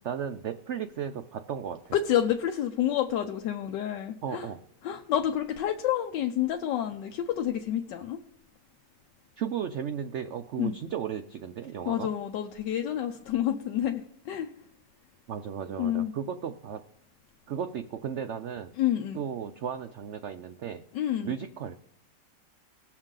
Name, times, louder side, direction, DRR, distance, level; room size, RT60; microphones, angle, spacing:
voice 1, 0.0-2.0 4.2-4.6 9.4-12.1 15.3-16.8 17.5-18.7 19.1-20.8 21.2-21.8, right 8 dB, 85° right, 9 dB, 0.6 m, -35 dB
voice 2, 1.9-4.5 4.8-8.2 10.6-10.8 11.9-14.5 15.8-16.1 18.8-19.2 20.9-21.3, left 10 dB, 90° left, 5 dB, 1.4 m, -29 dB
20.0 x 7.1 x 3.7 m, 0.72 s
omnidirectional pair, 1.9 m